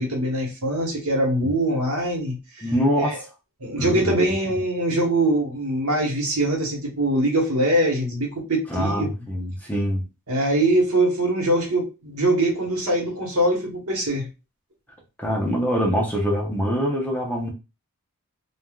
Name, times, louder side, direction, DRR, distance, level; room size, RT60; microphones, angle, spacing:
voice 1, 0.0-2.7 3.0-3.2 3.6-9.2 10.3-14.3, right 1 dB, 75° right, 1.1 m, -23 dB
voice 2, 2.6-3.3 3.8-4.1 8.7-10.0 15.2-17.5, equal, 5° left, 0.6 m, -24 dB
3.3 x 2.4 x 2.3 m
head